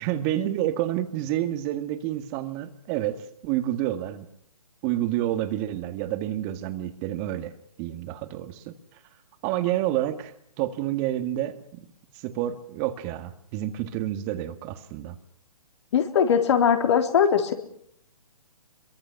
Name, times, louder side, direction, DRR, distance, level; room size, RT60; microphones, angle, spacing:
voice 1, 0.0-4.3 4.8-7.5 7.8-8.7 9.4-10.3 10.6-11.9 12.2-15.2, right 13 dB, 25° right, 9 dB, 1.9 m, -29 dB
voice 2, 15.9-17.5, left 7 dB, 50° left, 6 dB, 3.6 m, -20 dB
26.0 x 23.5 x 6.0 m, 0.68 s
hypercardioid pair, 145°, 19 cm